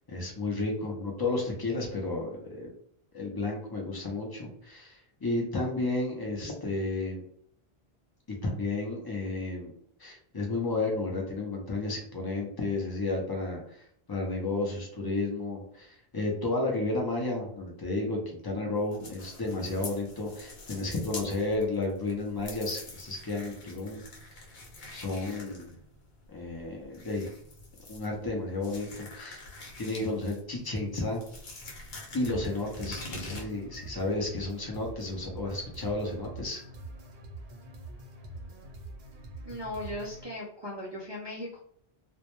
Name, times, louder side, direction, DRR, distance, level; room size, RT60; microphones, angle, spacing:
voice 1, 0.1-2.7 3.1-7.2 8.4-9.7 10.0-24.0 24.3-24.5 24.9-25.7 26.3-27.3 27.9-29.4 29.8-31.2 32.1-36.6, left 2 dB, 35° left, 0 dB, 0.3 m, -32 dB
sound 1, 18.8-33.4, left 2 dB, 70° left, 0.9 m, -46 dB
sound 2, 32.2-40.2, right 2 dB, 75° right, 0.8 m, -44 dB
voice 2, 39.4-41.6, left 1 dB, 45° right, -6 dB, 0.3 m, -38 dB
2.1 x 2.0 x 2.9 m, 0.64 s
omnidirectional pair, 1.1 m